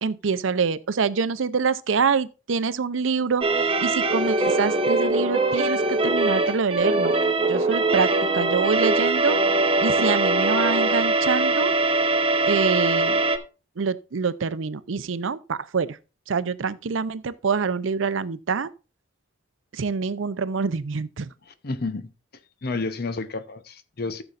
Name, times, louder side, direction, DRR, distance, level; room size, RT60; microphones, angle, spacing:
voice 1, 0.0-7.2 7.5-9.4 9.8-11.7 12.5-13.2 13.8-16.0 16.3-18.7 19.7-21.3, right 5 dB, 80° right, 0.6 m, -26 dB
sound 1, 3.4-13.4, right 2 dB, 30° right, 0.9 m, -22 dB
voice 2, 21.6-22.1 22.6-24.2, left 3 dB, 50° left, 0.8 m, -30 dB
14.5 x 6.9 x 2.5 m
head